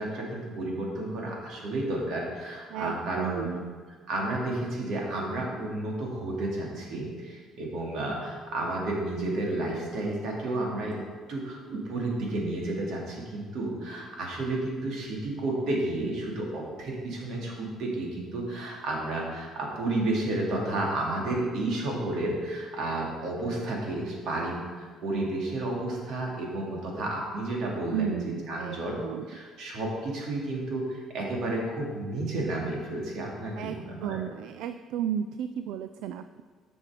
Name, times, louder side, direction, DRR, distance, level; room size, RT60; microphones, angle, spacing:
voice 1, 0.0-3.6 4.1-11.0 11.3-29.0 29.3-34.2, right 2 dB, 65° right, -2 dB, 2.5 m, -31 dB
voice 2, 2.7-3.8 27.9-29.2 33.6-36.4, right 9 dB, 85° right, 10 dB, 0.3 m, -34 dB
10.5 x 6.2 x 5.0 m, 1.5 s
cardioid pair, 155°, 0 cm